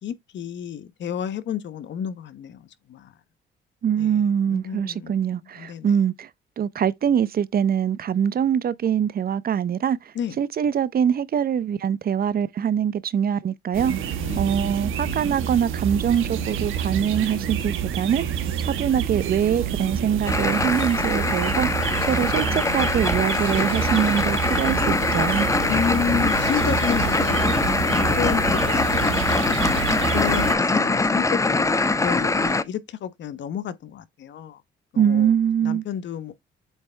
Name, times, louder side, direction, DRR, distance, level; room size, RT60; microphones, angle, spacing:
voice 1, 0.0-3.1 4.0-5.1 5.5-5.9 10.1-10.4 14.2-14.5 25.7-29.6 30.1-34.6 34.9-35.3 35.6-36.3, left 9 dB, 65° left, 1.1 m, -31 dB
voice 2, 3.8-6.3 6.6-18.3 18.6-25.5 35.0-35.8, right 8 dB, 50° right, 0.7 m, -23 dB
sound 1, 13.7-30.5, right 8 dB, 90° right, 1.3 m, -28 dB
sound 2, 20.2-32.6, left 3 dB, 15° left, 0.7 m, -23 dB
8.1 x 3.2 x 4.4 m
cardioid pair, 90°, 20 cm